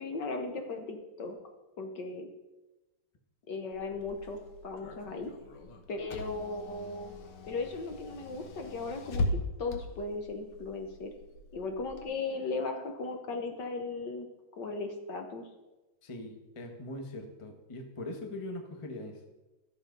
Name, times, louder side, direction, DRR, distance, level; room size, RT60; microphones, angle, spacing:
voice 1, 0.0-1.4 1.8-2.3 3.5-5.3 5.9-7.1 7.4-11.1 11.5-14.3 14.6-15.5, left 3 dB, 60° left, 4 dB, 1.5 m, -37 dB
Car / Engine, 3.7-12.0, left 2 dB, 75° left, 2.0 m, -39 dB
voice 2, 16.0-19.3, left 1 dB, 20° left, 4 dB, 1.0 m, -41 dB
13.5 x 7.3 x 5.3 m, 1.1 s
omnidirectional pair, 2.4 m